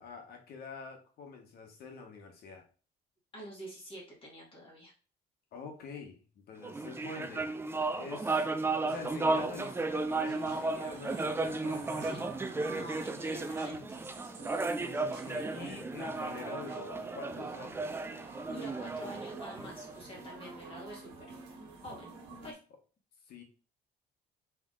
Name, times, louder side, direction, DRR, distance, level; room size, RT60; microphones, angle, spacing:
voice 1, 0.0-2.6 5.5-8.5 8.8-12.1 14.8-18.0 23.3-23.4, left 5 dB, 65° left, 3 dB, 1.4 m, -46 dB
voice 2, 3.3-4.9 12.0-12.3 12.6-14.0 18.5-21.3 21.8-22.1 22.4-22.6, equal, 30° left, -3 dB, 2.1 m, -46 dB
sound 1, 6.6-20.3, right 3 dB, 15° right, 0.5 m, -34 dB
sound 2, 8.9-22.5, right 4 dB, 85° right, 1.3 m, -49 dB
3.7 x 3.5 x 3.7 m, 0.36 s
cardioid pair, 110°, 17 cm